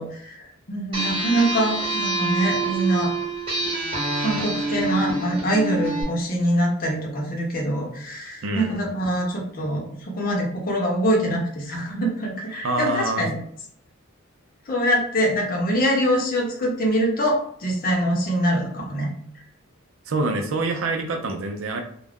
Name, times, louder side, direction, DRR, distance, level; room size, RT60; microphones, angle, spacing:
voice 1, 0.0-3.1 4.2-9.8 10.1-13.4 14.7-19.1, equal, 40° left, -1 dB, 0.7 m, -24 dB
sound 1, 0.9-6.0, right 3 dB, 25° right, 1.1 m, -26 dB
voice 2, 8.4-8.8 12.6-13.2 20.1-21.8, right 2 dB, 65° right, 5 dB, 0.5 m, -26 dB
2.4 x 2.2 x 3.4 m, 0.69 s
head